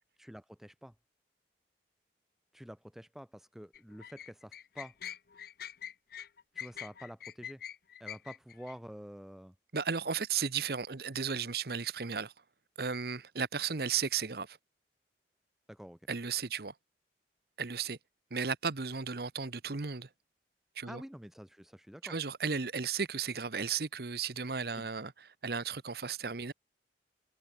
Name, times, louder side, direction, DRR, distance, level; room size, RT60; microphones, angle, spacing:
voice 1, 0.2-0.9 2.5-4.9 6.5-7.6 8.0-9.5 15.7-16.0 20.9-22.1 24.8-24.9, equal, ahead, 0.4 m, -48 dB
sound 1, 3.7-8.8, left 9 dB, 55° left, 0.7 m, -44 dB
voice 2, 9.7-12.3 12.8-14.6 16.1-16.7 17.6-18.0 18.3-20.1 20.8-21.0 22.0-25.1 25.4-26.5, right 6 dB, 60° right, 1.0 m, -34 dB
head